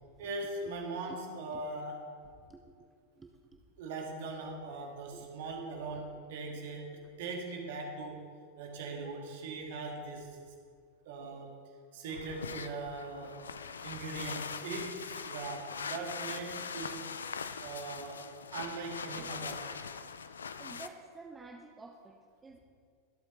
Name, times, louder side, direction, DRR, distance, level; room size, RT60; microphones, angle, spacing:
voice 1, 0.2-2.1 3.8-8.3 8.6-10.4 11.1-11.5 11.9-13.3 13.8-17.0 17.6-18.2 18.5-19.7, right 3 dB, 55° right, 2 dB, 1.9 m, -40 dB
voice 2, 3.2-3.6 5.1-5.3 6.1-6.2 20.6-22.6, right 3 dB, 15° right, 3 dB, 0.8 m, -51 dB
sound 1, 12.1-20.9, left 6 dB, 70° left, 0.5 m, -42 dB
23.0 x 8.3 x 3.2 m, 2.1 s
figure-of-eight pair, 90°, 0 cm